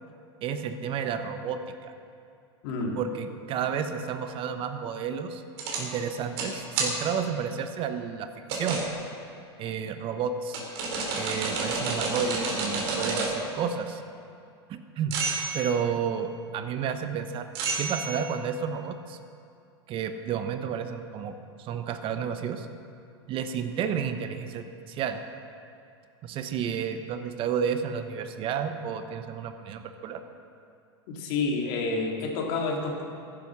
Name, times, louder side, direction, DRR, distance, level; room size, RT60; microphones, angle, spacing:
voice 1, 0.4-1.9 2.9-5.4 5.8-8.8 9.6-10.6 11.1-14.0 14.7-15.2 15.5-17.5 17.8-19.2 19.9-22.7 23.3-25.2 26.2-30.2, right 7 dB, 40° right, 8 dB, 1.0 m, -31 dB
voice 2, 2.6-3.0 31.1-33.0, left 3 dB, 55° left, 1 dB, 2.6 m, -29 dB
sound 1, 5.6-5.8 6.4-6.5 6.8-6.9 8.5-8.9 10.5-13.4 15.1-15.6 17.5-18.2, right 3 dB, 65° right, 3.6 m, -29 dB
14.0 x 11.0 x 6.2 m, 2.5 s
hypercardioid pair, 115°, 14 cm